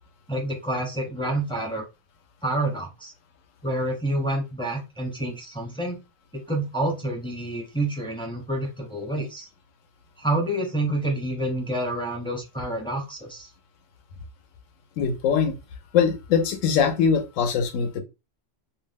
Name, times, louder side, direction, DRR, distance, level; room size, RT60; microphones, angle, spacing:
voice 1, 0.3-1.8 2.4-3.1 3.6-6.0 6.5-9.5 10.2-13.5, right 1 dB, 5° left, 0.4 m, -28 dB
voice 2, 15.0-15.5 15.9-18.0, left 6 dB, 85° left, 1.0 m, -22 dB
2.6 x 2.1 x 3.3 m
omnidirectional pair, 1.3 m